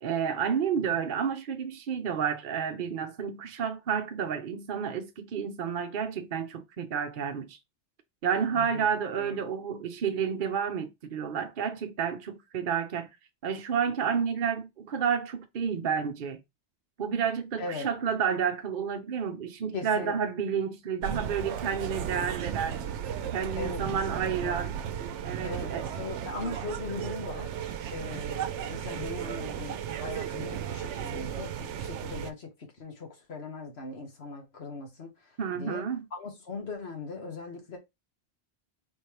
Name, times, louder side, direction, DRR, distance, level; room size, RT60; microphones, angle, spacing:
voice 1, 0.0-7.6 8.2-13.1 13.4-16.4 17.0-22.8 23.3-24.8 25.2-25.8 35.4-36.1, right 7 dB, 55° right, 0.8 m, -30 dB
voice 2, 8.5-8.9 9.2-9.4 17.6-17.9 19.7-20.2 23.6-24.6 25.4-35.8 36.1-37.8, left 4 dB, 65° left, 1.6 m, -40 dB
sound 1, 21.0-32.3, right 9 dB, 80° right, 0.9 m, -35 dB
4.3 x 3.3 x 2.8 m
omnidirectional pair, 1.2 m